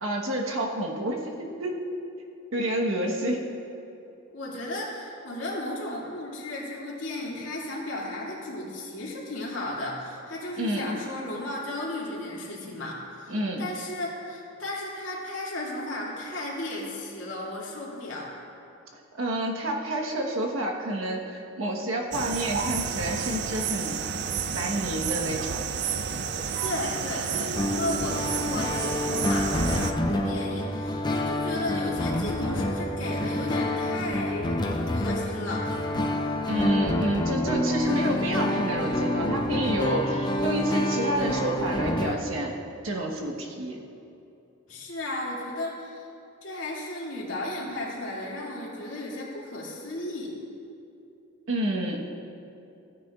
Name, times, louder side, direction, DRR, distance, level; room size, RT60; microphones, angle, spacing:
voice 1, 0.0-1.8 2.5-3.4 10.6-10.9 13.3-13.6 19.2-24.0 24.5-25.6 30.1-30.4 36.5-42.6 42.8-43.8 51.5-52.1, right 1 dB, 80° right, 0 dB, 1.2 m, -29 dB
voice 2, 4.3-18.3 26.3-34.6 34.9-35.8 44.7-46.1 46.4-50.3, left 1 dB, 70° left, -5 dB, 2.4 m, -34 dB
sound 1, 22.1-29.9, right 7 dB, 55° right, 0.4 m, -31 dB
sound 2, 27.5-42.1, left 1 dB, 20° left, 0.5 m, -28 dB
15.5 x 9.6 x 2.4 m, 2.7 s
head